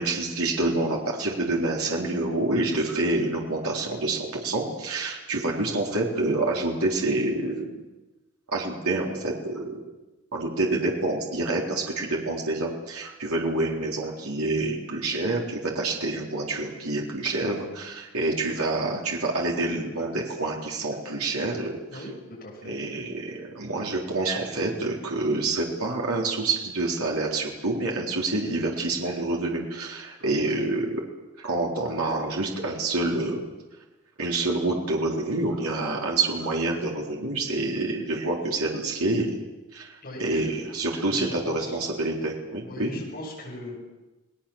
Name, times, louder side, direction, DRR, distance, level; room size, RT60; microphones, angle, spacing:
voice 1, 0.0-7.7 8.5-9.8 10.3-21.8 22.7-31.0 31.4-33.4 34.2-39.4 39.7-42.9, right 2 dB, 90° right, -1 dB, 4.0 m, -27 dB
voice 2, 22.4-22.9 30.4-30.5 40.0-40.5 41.1-41.8 42.6-43.8, left 1 dB, 40° left, -2 dB, 7.4 m, -39 dB
29.5 x 19.5 x 7.3 m, 1.1 s
head